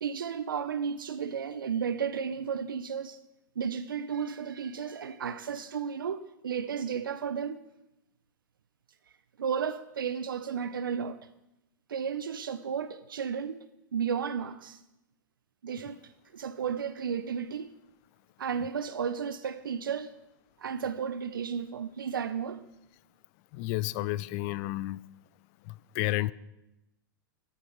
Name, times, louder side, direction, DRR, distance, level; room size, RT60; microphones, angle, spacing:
voice 1, 0.0-3.2 3.6-7.6 9.4-11.3 11.9-13.6 13.9-14.8 15.6-17.8 18.4-20.2 20.6-22.6, right 7 dB, 85° right, 0.5 m, -33 dB
voice 2, 23.5-25.0 25.6-26.3, left 17 dB, 50° left, 0.5 m, -31 dB
9.3 x 8.3 x 5.6 m
hypercardioid pair, 105°, 11 cm